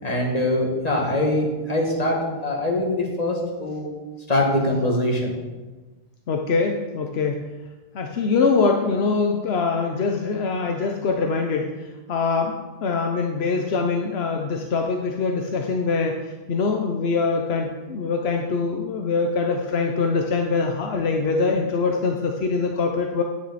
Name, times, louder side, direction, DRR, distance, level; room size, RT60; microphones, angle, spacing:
voice 1, 0.0-3.9 4.3-5.4, left 1 dB, 40° left, -1 dB, 2.0 m, -23 dB
voice 2, 6.3-7.5 7.9-23.2, left 4 dB, 80° left, 3 dB, 1.0 m, -23 dB
10.0 x 9.5 x 4.1 m, 1.2 s
omnidirectional pair, 1.0 m